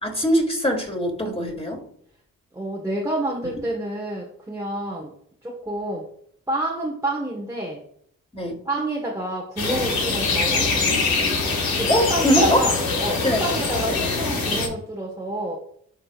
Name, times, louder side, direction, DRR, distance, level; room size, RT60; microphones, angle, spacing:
voice 1, 0.0-1.8 8.3-8.6 11.9-12.6 13.2-13.4 13.9-14.1, equal, 15° left, 1 dB, 2.7 m, -22 dB
voice 2, 2.5-5.1 5.4-6.1 6.5-7.8 8.6-10.8 11.8-15.6, right 1 dB, 10° right, -1 dB, 1.4 m, -28 dB
sound 1, 9.6-14.7, left 4 dB, 80° left, 1.8 m, -23 dB
11.0 x 3.8 x 2.4 m, 0.67 s
supercardioid pair, 45°, 36 cm